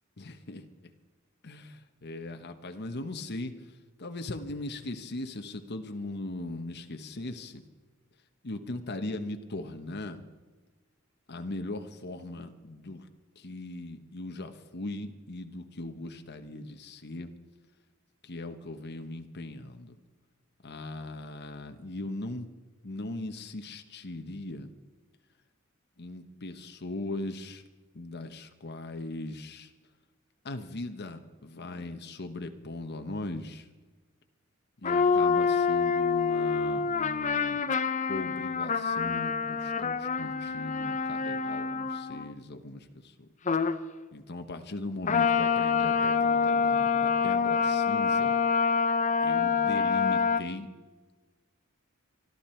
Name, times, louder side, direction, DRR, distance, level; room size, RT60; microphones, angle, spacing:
voice 1, 0.2-0.6 1.4-3.5 4.0-7.6 8.4-10.2 11.3-13.1 13.4-17.3 18.2-20.0 20.6-22.5 22.8-24.7 26.0-27.6 27.9-29.7 30.4-33.7 34.8-37.6 38.1-43.3 44.1-48.4 49.2-50.7, left 2 dB, 55° left, 6 dB, 1.1 m, -39 dB
sound 1, 34.8-42.3 43.5-43.8 45.1-50.4, left 5 dB, 35° left, 0.7 m, -26 dB
25.0 x 12.0 x 4.5 m, 1.3 s
head